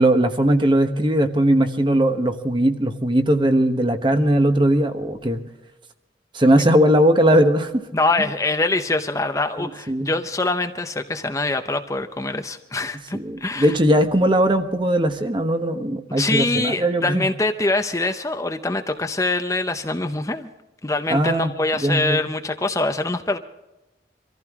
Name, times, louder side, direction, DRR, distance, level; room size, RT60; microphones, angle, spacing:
voice 1, 0.0-5.4 6.3-7.8 9.6-10.1 13.1-17.2 21.1-21.5 21.8-22.2, right 1 dB, 25° right, 7 dB, 1.1 m, -19 dB
voice 2, 7.9-13.8 16.2-20.5 20.8-23.4, left 2 dB, 20° left, 7 dB, 0.7 m, -24 dB
25.0 x 15.0 x 3.6 m, 0.99 s
head